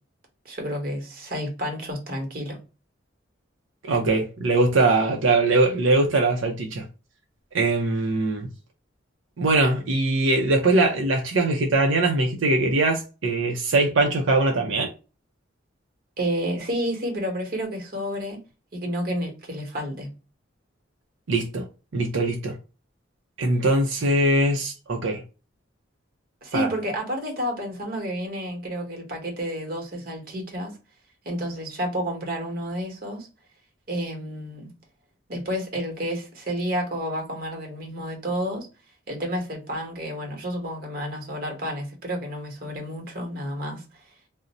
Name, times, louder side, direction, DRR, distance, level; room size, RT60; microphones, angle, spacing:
voice 1, 0.4-2.6 16.2-18.4 18.7-20.1 26.4-30.7 31.2-33.3 33.9-34.7 35.3-38.7 39.1-43.8, equal, 50° right, 1.0 m, -30 dB
voice 2, 3.9-6.8 7.5-8.5 9.4-14.9 21.3-21.6 21.9-22.6 23.4-25.2 26.5-26.7, right 2 dB, 85° right, 0.6 m, -21 dB
2.5 x 2.1 x 4.0 m
head